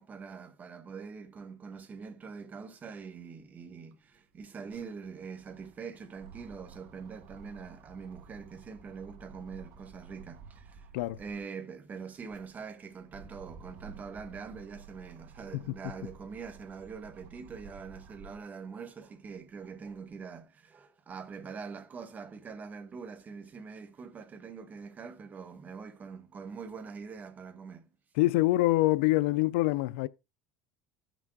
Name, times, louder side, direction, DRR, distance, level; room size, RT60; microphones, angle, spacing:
voice 1, 0.0-10.9 11.1-27.9, right 5 dB, 25° right, 1.0 m, -44 dB
sound 1, 3.4-3.5 3.7-11.5 12.0-18.5 19.0-20.2, right 5 dB, 60° right, 1.1 m, -53 dB
voice 2, 28.2-30.1, left 18 dB, 85° left, 0.4 m, -25 dB
15.0 x 6.1 x 2.3 m
supercardioid pair, 135°, 6 cm